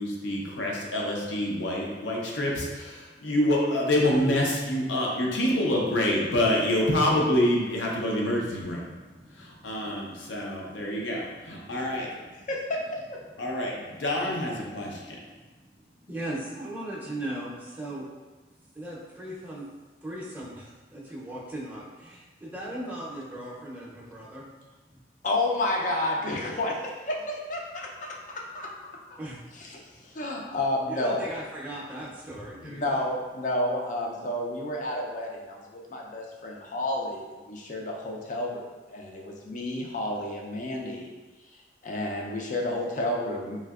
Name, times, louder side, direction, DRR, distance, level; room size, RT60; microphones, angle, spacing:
voice 1, 0.0-8.8 9.3-12.0 13.4-15.1, left 1 dB, 85° left, -2 dB, 0.6 m, -27 dB
voice 2, 8.8-10.0 10.7-11.7 13.4-13.9 14.8-18.2 18.5-19.7 20.0-24.5 24.9-25.0 29.2-29.6 29.9-30.0 30.9-33.0, right 1 dB, 10° right, -6 dB, 0.5 m, -39 dB
voice 3, 25.2-29.0 29.5-31.2 32.6-41.1 41.8-43.6, left 1 dB, 45° left, -1 dB, 0.4 m, -31 dB
3.2 x 2.6 x 2.4 m, 1.3 s
head